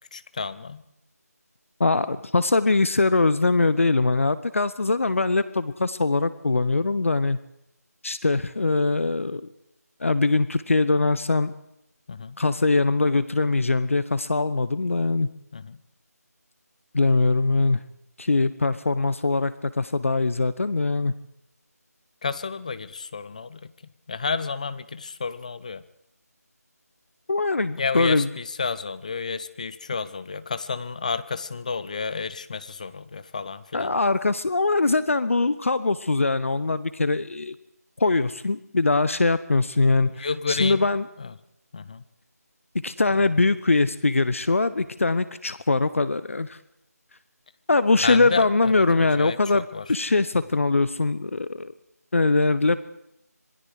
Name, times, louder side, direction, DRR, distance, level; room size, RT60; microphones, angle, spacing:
voice 1, 0.1-0.8 12.1-12.4 15.5-15.8 22.2-23.7 24.1-25.8 27.7-33.9 40.2-40.9 41.2-41.3 41.7-42.0 48.0-49.8, left 5 dB, 25° left, 15 dB, 0.8 m, -31 dB
voice 2, 1.8-7.4 8.0-9.5 10.0-11.5 12.4-15.3 16.9-17.8 18.2-21.1 27.3-28.3 33.7-37.5 38.0-41.0 42.8-46.6 47.7-51.7 52.1-52.8, left 3 dB, 50° left, 15 dB, 0.9 m, -22 dB
26.5 x 21.0 x 4.9 m, 0.80 s
figure-of-eight pair, 165°, 9 cm